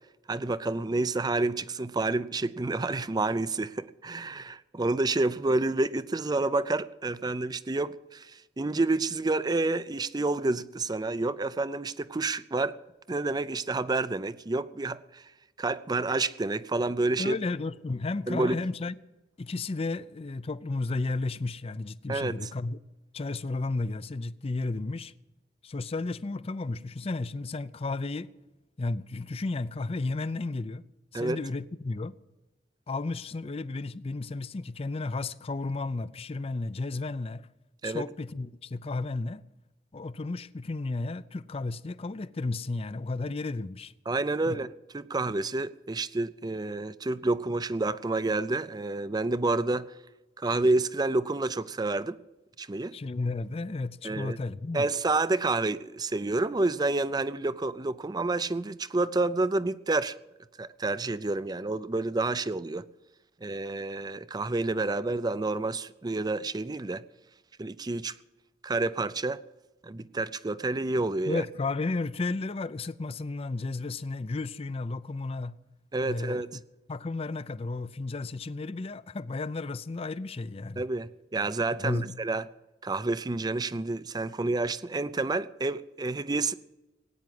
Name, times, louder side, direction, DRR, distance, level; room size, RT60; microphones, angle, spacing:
voice 1, 0.3-12.8 13.1-15.3 15.6-17.4 18.3-18.6 22.1-22.5 31.1-31.4 37.8-38.0 44.1-49.9 50.4-52.2 52.6-52.9 54.0-54.4 54.7-60.2 60.6-62.9 63.4-67.0 67.6-68.2 68.6-69.4 69.8-71.4 75.9-76.6 80.8-82.5 82.8-86.5, right 2 dB, 20° right, 0.5 m, -29 dB
voice 2, 17.2-18.9 19.4-22.8 23.1-25.1 25.6-28.3 28.8-30.8 31.1-32.2 32.9-37.5 37.8-39.4 39.9-43.9 44.5-44.6 52.9-54.9 71.3-75.5 76.0-76.6 76.9-80.8 81.7-82.2, left 3 dB, 35° left, 0.5 m, -33 dB
18.5 x 9.5 x 7.7 m
head